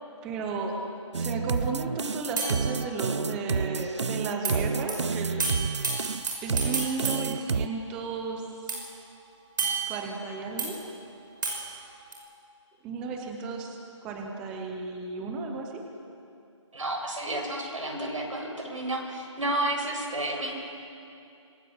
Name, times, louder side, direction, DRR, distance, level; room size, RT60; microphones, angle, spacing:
voice 1, 0.2-0.8 1.1-5.5 6.1-8.8 9.9-10.8 12.8-15.9, right 4 dB, 5° right, 2 dB, 0.6 m, -34 dB
sound 1, 1.1-7.7, right 5 dB, 65° right, 0.6 m, -29 dB
sound 2, 2.4-3.6 4.4-4.6 4.9-5.0 5.4-8.2 8.7-10.7 11.4-12.1, right 4 dB, 40° right, 6.2 m, -33 dB
voice 2, 16.7-20.5, right 1 dB, 85° right, 0 dB, 7.7 m, -31 dB
25.5 x 22.5 x 7.8 m, 2.6 s
figure-of-eight pair, 170°, 16 cm